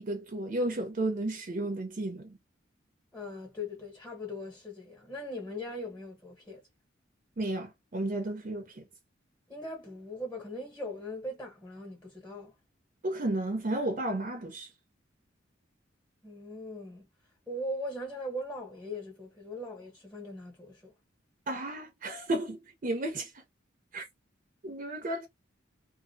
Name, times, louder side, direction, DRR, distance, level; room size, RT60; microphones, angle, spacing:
voice 1, 0.0-2.4 7.4-8.8 13.0-14.7 21.5-23.4 23.9-24.1 24.6-25.3, right 1 dB, 45° right, 0.5 m, -33 dB
voice 2, 3.1-6.6 9.5-12.5 16.2-17.1 17.5-20.9, left 1 dB, 10° left, 0.8 m, -40 dB
2.5 x 2.0 x 2.5 m
head